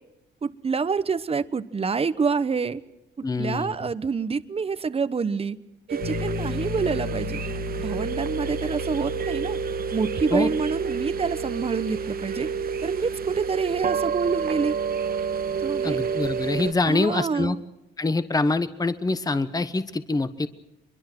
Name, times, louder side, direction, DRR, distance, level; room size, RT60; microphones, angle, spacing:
voice 1, 0.4-2.8 3.2-5.6 5.9-7.4 7.8-9.6 9.9-12.5 12.8-14.7 15.6-16.0 16.8-17.6, right 5 dB, 30° right, 14 dB, 1.0 m, -27 dB
voice 2, 3.2-3.9 10.3-10.5 15.8-17.6 18.0-20.5, left 3 dB, 20° left, 12 dB, 1.1 m, -25 dB
sound 1, 5.9-16.7, right 6 dB, 50° right, 1.2 m, -29 dB
Piano, 6.0-16.8, left 3 dB, 55° left, 3.0 m, -37 dB
24.5 x 22.5 x 6.1 m, 0.94 s
cardioid pair, 90°, 20 cm